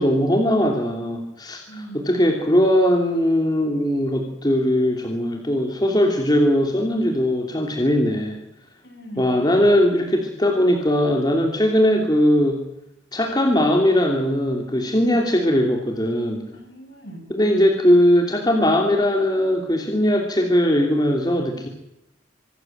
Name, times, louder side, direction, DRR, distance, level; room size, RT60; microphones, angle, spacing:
voice 1, 0.0-8.4 9.2-12.6 13.1-16.4 17.3-21.7, equal, 20° left, 2 dB, 2.9 m, -19 dB
voice 2, 1.7-2.1 8.8-9.4 14.9-15.2 16.5-17.3, right 1 dB, 55° left, 6 dB, 5.7 m, -40 dB
24.5 x 14.5 x 8.8 m, 0.83 s
head